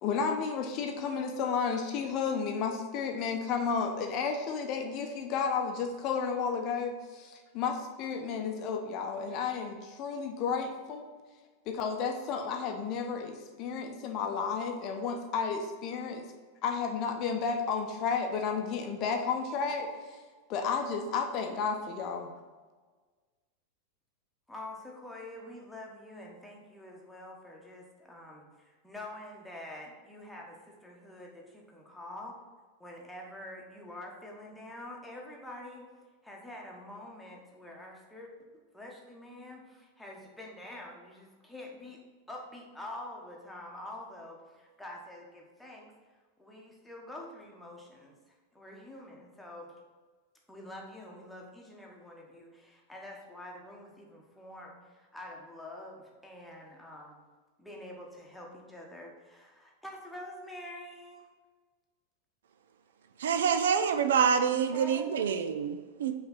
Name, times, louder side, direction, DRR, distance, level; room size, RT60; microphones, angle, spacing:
voice 1, 0.0-11.0 11.7-16.2 16.6-20.2 20.5-22.3, left 5 dB, 40° left, 4 dB, 0.7 m, -32 dB
voice 2, 24.5-32.4 32.8-35.9 36.2-38.3 38.7-42.0 42.3-45.9 46.4-48.1 48.5-49.7 50.5-57.2 57.6-61.3 64.7-65.5, left 1 dB, 5° left, -2 dB, 1.1 m, -46 dB
voice 3, 63.2-66.2, right 7 dB, 60° right, 9 dB, 0.4 m, -27 dB
5.6 x 3.3 x 5.7 m, 1.4 s
figure-of-eight pair, 90°, 0 cm